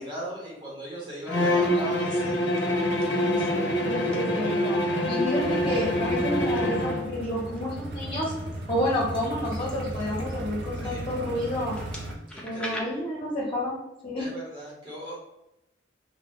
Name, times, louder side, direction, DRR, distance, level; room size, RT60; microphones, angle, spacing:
voice 1, 0.0-3.5 10.8-11.0 12.3-13.0 14.2-15.2, right 1 dB, 25° right, -6 dB, 0.8 m, -38 dB
Bowed string instrument, 1.3-7.1, left 1 dB, 70° left, 0.6 m, -25 dB
sound 1, 1.9-2.2 2.5-3.1 3.9-4.2 5.0-5.3 6.1-6.6 7.1-7.6 8.2-10.9 11.6-12.8, left 1 dB, 5° left, 0.4 m, -44 dB
voice 2, 3.8-4.8 5.1-8.3 8.7-11.7 12.4-13.8 14.0-14.3, left 1 dB, 30° left, -7 dB, 0.8 m, -30 dB
sound 2, 5.4-12.2, right 1 dB, 60° right, 0.5 m, -36 dB
2.6 x 2.1 x 3.5 m, 0.89 s
head